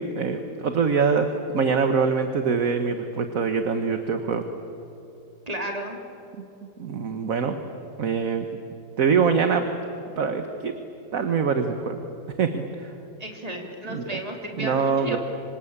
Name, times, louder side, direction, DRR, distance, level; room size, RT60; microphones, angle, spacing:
voice 1, 0.0-4.4 6.4-6.5 6.8-7.6 8.0-8.5 9.0-9.6 10.2-10.7 11.1-12.0 12.4-12.9 13.9-14.2 14.6-15.2, right 5 dB, 50° right, 7 dB, 1.6 m, -24 dB
voice 2, 5.5-6.0 13.2-15.2, right 1 dB, 20° right, 2 dB, 3.1 m, -33 dB
26.0 x 24.5 x 8.8 m, 2.9 s
omnidirectional pair, 2.0 m